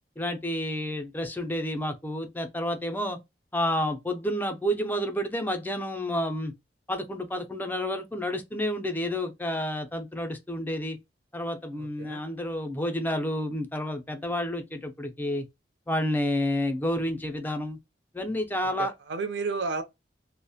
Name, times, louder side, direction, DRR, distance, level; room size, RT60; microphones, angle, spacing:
voice 1, 0.2-3.2 3.5-6.5 6.9-11.0 11.3-15.4 15.9-17.8 18.1-18.9, left 1 dB, 10° left, 0.4 m, -30 dB
voice 2, 11.8-12.2 18.8-19.8, right 4 dB, 75° right, 0.5 m, -32 dB
2.3 x 2.0 x 2.6 m
head